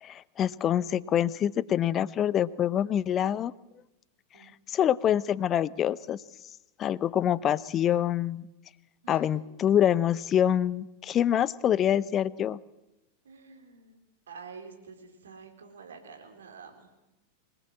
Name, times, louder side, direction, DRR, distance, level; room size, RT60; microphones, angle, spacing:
voice 1, 0.0-3.5 4.7-6.2 6.8-8.5 9.1-12.6, left 10 dB, 30° left, 19 dB, 0.8 m, -26 dB
voice 2, 4.3-4.9 9.0-9.3 13.2-14.0 14.3-16.9, right 5 dB, 65° right, 4 dB, 4.3 m, -48 dB
25.5 x 19.5 x 7.6 m, 0.96 s
figure-of-eight pair, 90°, 0 cm